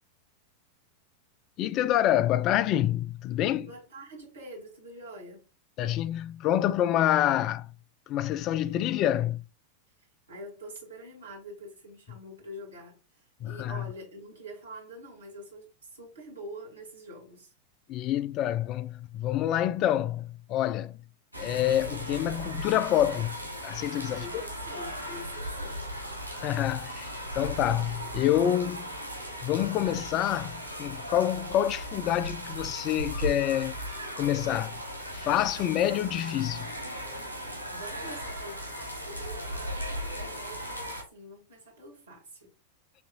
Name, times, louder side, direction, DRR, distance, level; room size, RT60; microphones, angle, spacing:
voice 1, 1.6-3.7 5.8-7.7 8.1-9.4 13.4-13.9 17.9-21.0 21.4-23.4 23.6-24.3 26.3-28.9 29.4-33.8 34.2-34.7 35.1-36.7, left 12 dB, 35° left, 0.3 m, -27 dB
voice 2, 3.6-5.5 10.0-17.5 24.0-25.8 37.7-42.5, right 1 dB, 70° right, 2.1 m, -45 dB
sound 1, 21.3-41.0, equal, 85° left, 1.3 m, -37 dB
7.0 x 2.9 x 2.5 m
figure-of-eight pair, 90°, 0 cm